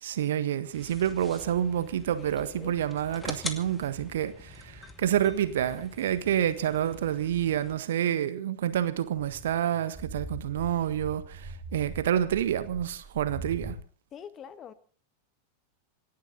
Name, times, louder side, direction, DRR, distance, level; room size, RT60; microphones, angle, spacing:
voice 1, 0.0-13.8, right 10 dB, 60° right, 1.5 m, -28 dB
sound 1, 0.7-7.7, left 3 dB, 10° left, 2.4 m, -44 dB
voice 2, 2.2-2.7 14.1-14.7, left 8 dB, 30° left, 1.4 m, -45 dB
sound 2, 9.3-13.8, right 2 dB, 20° right, 4.1 m, -42 dB
27.0 x 11.5 x 4.1 m
figure-of-eight pair, 90°, 0 cm